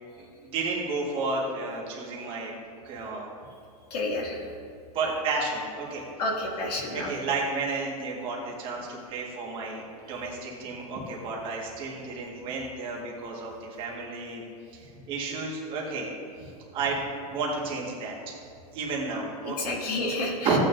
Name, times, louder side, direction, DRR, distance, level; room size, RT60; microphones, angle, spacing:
voice 1, 0.5-2.5 2.8-3.3 4.9-6.0 6.9-9.8 10.1-14.4 14.7-16.1 16.4-17.0 17.3-18.1 18.7-19.8 20.4-20.6, right 4 dB, 25° right, -2 dB, 1.6 m, -32 dB
voice 2, 3.9-4.4 6.2-7.1 19.4-20.6, left 2 dB, 75° left, -1 dB, 2.3 m, -30 dB
14.5 x 8.9 x 2.6 m, 2.5 s
supercardioid pair, 170°, 20 cm